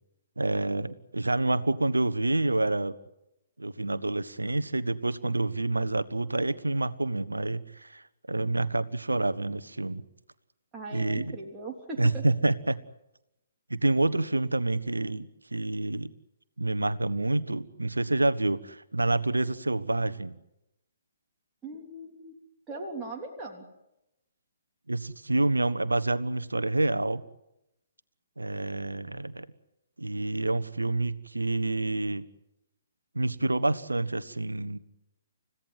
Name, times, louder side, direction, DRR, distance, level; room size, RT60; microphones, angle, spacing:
voice 1, 0.4-2.9 3.6-8.0 8.3-10.0 10.9-11.4 12.0-12.8 13.7-16.1 16.6-20.3 24.9-27.2 28.4-29.5 30.0-32.2 33.1-34.8, right 2 dB, 80° right, 13 dB, 1.3 m, -28 dB
voice 2, 10.7-12.2 21.6-22.3 22.7-23.7, right 2 dB, 15° right, -2 dB, 3.4 m, -39 dB
30.0 x 16.5 x 9.7 m, 0.89 s
figure-of-eight pair, 130°, 0 cm